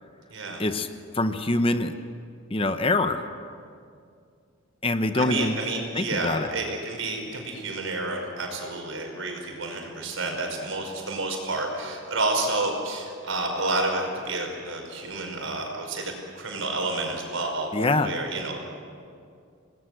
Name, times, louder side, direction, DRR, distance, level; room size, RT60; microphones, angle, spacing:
voice 1, 0.3-0.6 5.1-17.7 18.0-18.6, right 2 dB, 80° right, 2 dB, 5.3 m, -30 dB
voice 2, 1.1-1.9 2.5-3.2 4.8-5.5 6.0-6.5 17.7-18.1, left 2 dB, 25° left, 9 dB, 0.9 m, -24 dB
27.5 x 19.0 x 8.0 m, 2.3 s
head